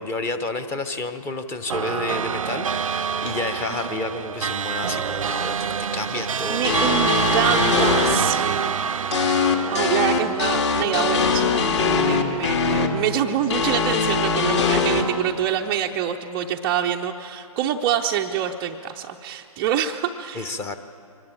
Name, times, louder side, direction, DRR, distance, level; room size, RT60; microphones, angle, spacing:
voice 1, 0.0-6.7 20.3-20.8, left 3 dB, 10° left, 10 dB, 0.8 m, -30 dB
sound 1, 1.7-11.3, right 6 dB, 60° right, 0.5 m, -26 dB
voice 2, 3.7-4.0 6.1-8.9 9.3-11.7 12.0-20.5, right 9 dB, 15° right, 2 dB, 0.5 m, -26 dB
sound 2, 6.6-8.2 9.1-12.9 13.5-15.0, left 5 dB, 50° left, 2.6 m, -21 dB
24.0 x 19.5 x 8.7 m, 2.7 s
figure-of-eight pair, 135°, 19 cm